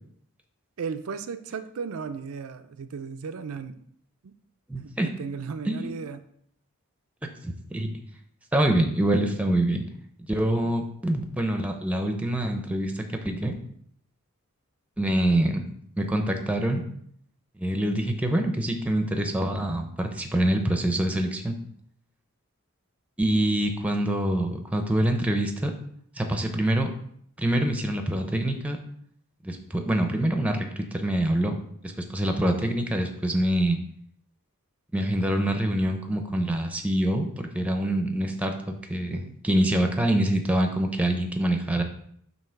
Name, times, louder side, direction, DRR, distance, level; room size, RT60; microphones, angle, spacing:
voice 1, 0.8-3.8 4.2-4.3 4.8-6.3 39.1-39.4, right 5 dB, 75° right, 9 dB, 0.4 m, -35 dB
voice 2, 4.7-5.1 5.7-5.9 7.4-8.0 8.5-9.8 10.2-13.6 15.0-15.7 16.0-16.8 17.6-21.5 23.2-25.7 26.2-26.9 27.4-28.8 29.4-31.6 32.1-33.8 34.9-41.8, right 1 dB, 5° right, 5 dB, 0.6 m, -25 dB
7.6 x 2.8 x 5.8 m, 0.67 s
head